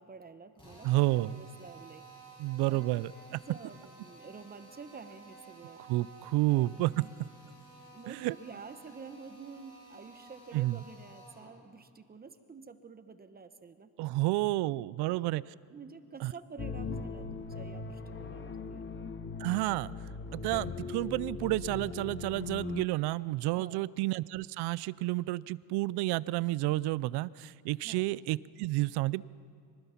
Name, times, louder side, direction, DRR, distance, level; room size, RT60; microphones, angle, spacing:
voice 1, 0.0-2.0 2.7-2.8 3.5-5.8 6.5-7.1 7.8-13.9 15.0-15.4 15.7-18.8 23.6-23.9 27.8-28.0, right 5 dB, 25° right, 10 dB, 1.0 m, -49 dB
Drill, 0.6-11.6, right 2 dB, 15° left, 6.1 m, -54 dB
voice 2, 0.8-1.4 2.4-3.1 5.9-6.9 8.1-8.3 10.5-10.8 14.0-15.4 16.2-16.3 19.4-19.9 20.3-29.2, right 18 dB, 90° right, 21 dB, 0.5 m, -30 dB
sound 1, 16.6-22.8, left 5 dB, 30° left, 1.0 m, -40 dB
24.0 x 19.5 x 5.8 m, 2.4 s
cardioid pair, 125°, 38 cm